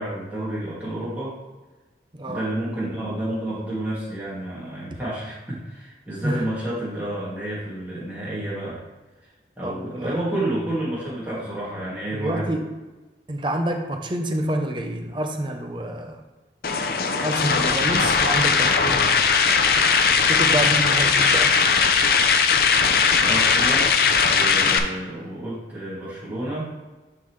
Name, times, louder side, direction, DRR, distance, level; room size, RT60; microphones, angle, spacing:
voice 1, 0.0-1.3 2.3-8.8 9.6-12.5 23.2-23.9 24.2-26.7, right 1 dB, 10° right, -8 dB, 2.3 m, -30 dB
voice 2, 2.1-2.5 6.2-6.4 9.6-10.2 12.1-12.7 13.3-16.2 17.1-19.2 20.1-21.5, right 1 dB, 25° right, 4 dB, 0.6 m, -27 dB
sound 1, 16.6-24.8, left 5 dB, 55° left, 0.5 m, -19 dB
10.5 x 3.8 x 3.2 m, 1.2 s
head